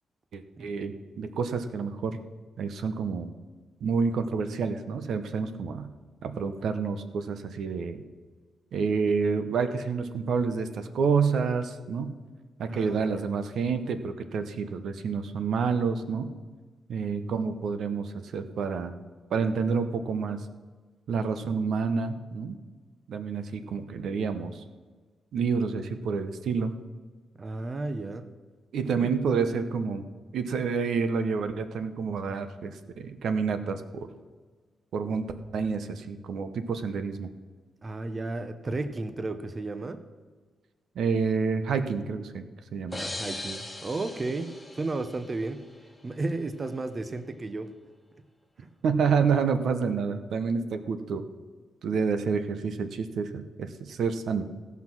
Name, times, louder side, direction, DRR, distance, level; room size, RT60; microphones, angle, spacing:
voice 1, 0.3-2.2 2.6-3.3 3.8-5.9 6.2-8.0 8.7-12.1 12.6-16.3 16.9-18.9 19.3-20.4 21.1-22.6 23.1-24.6 25.3-26.7 28.7-30.0 30.3-34.1 34.9-35.3 35.5-37.3 41.0-42.4 42.7-43.0 48.8-51.2 51.8-54.5, right 5 dB, 75° right, 10 dB, 0.9 m, -28 dB
voice 2, 12.7-13.2 27.4-28.3 28.9-29.1 37.8-40.0 42.9-45.6 46.0-47.7 48.6-48.7, right 2 dB, 30° right, 10 dB, 0.7 m, -33 dB
sound 1, 42.9-45.7, left 2 dB, 10° left, 1.5 m, -39 dB
16.5 x 5.9 x 6.0 m, 1.4 s
cardioid pair, 110°, 0 cm